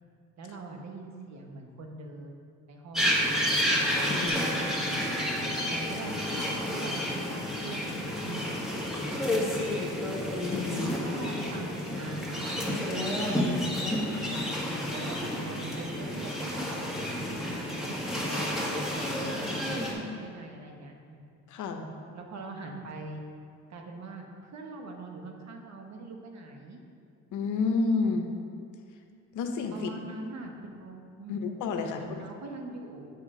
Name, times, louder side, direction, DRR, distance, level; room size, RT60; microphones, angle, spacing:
voice 1, 0.4-3.2 4.2-4.5 5.7-6.1 6.6-10.0 10.7-14.4 14.9-16.8 17.4-19.4 20.0-21.3 22.1-23.2 23.7-26.8 29.7-31.4 31.8-33.1, right 3 dB, 60° right, 2 dB, 1.1 m, -43 dB
sound 1, 2.9-19.9, left 1 dB, ahead, 1.6 m, -30 dB
voice 2, 4.1-4.6 10.5-10.9 21.5-21.9 27.3-28.3 29.3-29.9 31.3-32.2, left 4 dB, 80° left, 5 dB, 0.8 m, -30 dB
Musical instrument, 4.3-10.2, equal, 30° right, 1.8 m, -47 dB
7.9 x 5.8 x 3.8 m, 2.3 s
cardioid pair, 90°, 30 cm